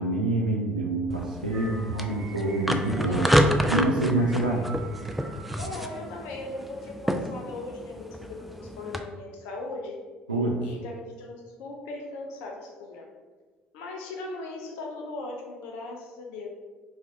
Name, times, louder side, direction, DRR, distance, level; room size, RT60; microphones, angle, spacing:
voice 1, 0.0-3.3 3.7-4.7 10.3-10.6, right 2 dB, 90° right, -2 dB, 0.4 m, -26 dB
sound 1, 1.1-9.0, equal, ahead, 0.3 m, -29 dB
voice 2, 1.5-2.3 2.8-3.6 5.6-10.0 10.6-13.1 13.7-16.5, left 2 dB, 65° left, 1 dB, 0.5 m, -39 dB
sound 2, 1.5-6.9, right 3 dB, 30° right, 0.9 m, -45 dB
4.8 x 2.5 x 2.7 m, 1.3 s
figure-of-eight pair, 55°, 4 cm